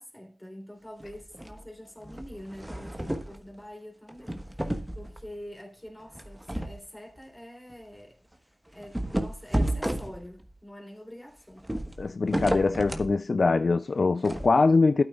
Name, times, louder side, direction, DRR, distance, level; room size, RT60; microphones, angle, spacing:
voice 1, 0.0-11.7, equal, 10° left, 3.3 m, -45 dB
sound 1, 1.0-1.6 2.0-3.4 4.1-5.3 6.1-6.8 7.2-7.3 7.7-7.8 8.8-10.5 11.6-13.1 14.2-14.5, right 1 dB, 10° right, 1.3 m, -32 dB
voice 2, 12.0-15.0, left 3 dB, 60° left, 0.4 m, -23 dB
13.0 x 8.7 x 2.4 m
cardioid pair, 40°, 0 cm